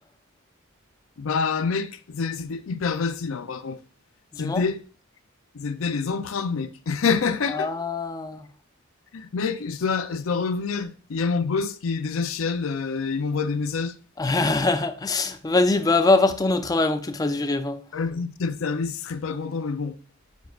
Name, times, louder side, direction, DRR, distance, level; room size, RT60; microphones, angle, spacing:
voice 1, 1.2-3.8 4.4-4.8 5.6-7.7 9.1-13.9 17.9-19.9, left 5 dB, 70° left, 0.5 m, -27 dB
voice 2, 4.3-4.6 7.5-8.5 14.2-17.8, left 3 dB, 20° left, 0.4 m, -23 dB
9.1 x 4.6 x 2.4 m
head